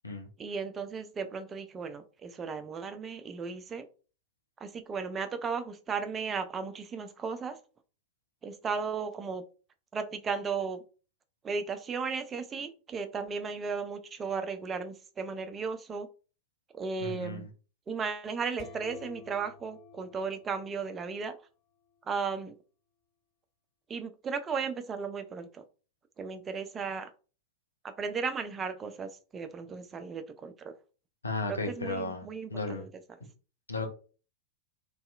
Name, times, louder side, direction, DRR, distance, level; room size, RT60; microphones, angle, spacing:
voice 1, 0.4-3.9 4.6-7.6 8.4-9.4 9.9-10.8 11.4-16.1 16.7-17.5 17.9-21.4 22.1-22.5 23.9-25.6 26.2-27.1 28.0-30.7 31.5-32.9, right 5 dB, 20° right, 0.4 m, -35 dB
voice 2, 17.0-17.5 31.2-32.9 33.7-33.9, left 3 dB, 80° left, 0.6 m, -35 dB
sound 1, 18.6-21.3, left 5 dB, 25° left, 1.4 m, -51 dB
2.6 x 2.3 x 2.3 m
figure-of-eight pair, 90°, 0 cm